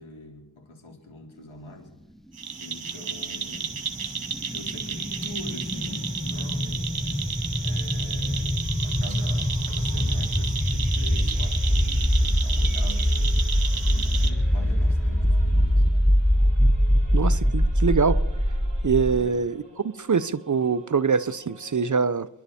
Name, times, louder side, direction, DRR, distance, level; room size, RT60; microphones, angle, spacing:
voice 1, 0.0-1.9 2.6-3.9 4.5-7.3 7.6-13.4 13.7-15.8 19.1-19.4, left 2 dB, 75° left, 4.1 m, -43 dB
sound 1, 2.4-14.3, right 6 dB, 80° right, 1.9 m, -33 dB
Singing / Musical instrument, 2.5-21.8, right 3 dB, 60° right, 5.9 m, -52 dB
sound 2, 3.4-19.3, equal, ahead, 0.6 m, -23 dB
voice 2, 17.1-18.2 18.8-19.6 19.8-22.3, right 5 dB, 40° right, 0.7 m, -24 dB
29.5 x 11.5 x 4.2 m
wide cardioid pair, 75°, 48 cm